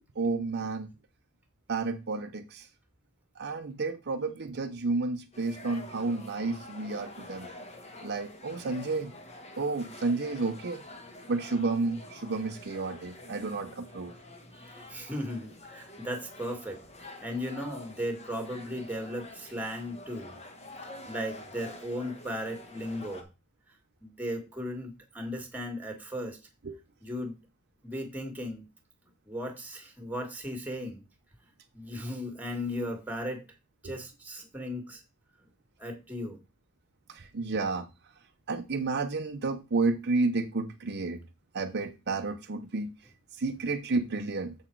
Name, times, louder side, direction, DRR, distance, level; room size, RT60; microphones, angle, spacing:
voice 1, 0.2-0.9 1.7-2.7 3.4-7.5 8.0-9.1 9.6-10.8 11.3-14.1 26.7-26.8 33.8-33.9 37.1-37.9 38.5-41.2 41.5-42.9 43.4-44.5, right 3 dB, 50° right, 0.7 m, -31 dB
sound 1, 5.3-23.2, left 2 dB, 30° left, 1.5 m, -47 dB
voice 2, 14.5-16.8 17.2-20.3 21.1-23.3 24.0-26.4 27.0-27.4 27.8-28.7 29.3-31.0 31.7-33.5 33.8-35.0 35.8-36.4, equal, 10° right, 1.8 m, -36 dB
7.3 x 5.9 x 4.5 m
head